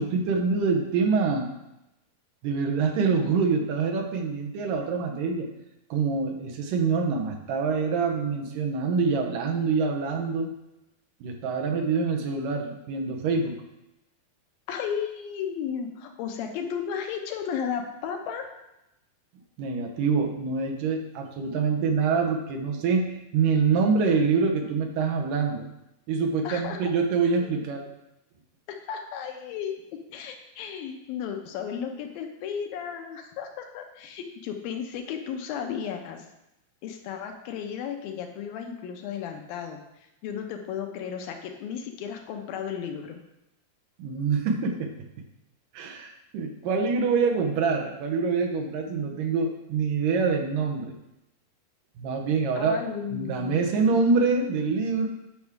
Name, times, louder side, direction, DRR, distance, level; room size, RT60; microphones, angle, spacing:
voice 1, 0.0-1.5 2.4-5.5 5.9-10.5 11.2-13.5 19.6-25.7 26.1-27.8 44.0-44.9 45.7-50.9 52.0-52.8 53.1-55.1, right 5 dB, 75° right, 2 dB, 2.5 m, -25 dB
voice 2, 14.7-18.4 26.4-26.9 27.4-27.5 28.7-29.7 30.1-36.2 36.8-39.8 40.2-43.2 52.6-53.9, left 7 dB, 90° left, 4 dB, 2.6 m, -34 dB
10.5 x 6.1 x 3.6 m, 0.89 s
omnidirectional pair, 4.1 m